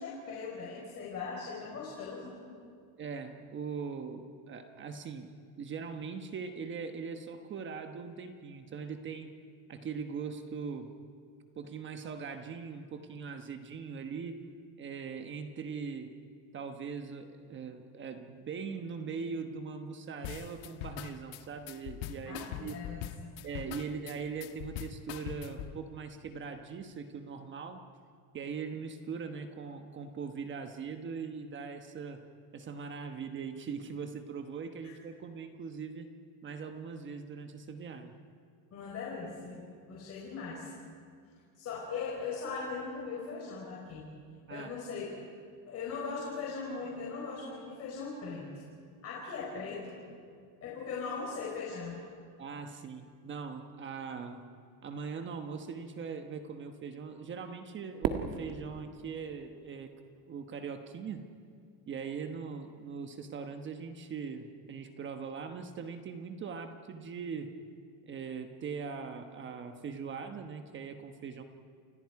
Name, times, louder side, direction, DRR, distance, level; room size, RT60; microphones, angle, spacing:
voice 1, 0.0-2.3 22.3-23.3 38.7-39.6 39.9-40.7 41.5-44.0 44.5-45.1 45.7-48.4 49.0-50.0 50.2-50.3 50.6-52.0, left 5 dB, 30° left, -4 dB, 4.5 m, -39 dB
voice 2, 3.0-5.3 5.6-9.3 9.7-10.9 11.6-14.4 14.8-16.1 16.5-22.7 23.4-27.9 28.3-32.2 32.5-36.1 36.4-38.2 44.5-44.7 52.4-54.4 54.8-59.9 60.3-61.2 61.9-67.5 68.1-71.4, right 5 dB, 25° right, 7 dB, 1.2 m, -41 dB
sound 1, 20.2-25.8, left 11 dB, 60° left, 1.5 m, -42 dB
Fireworks, 58.0-60.3, right 8 dB, 45° right, 1.9 m, -37 dB
29.5 x 28.5 x 4.8 m, 2.2 s
cardioid pair, 165°, 47 cm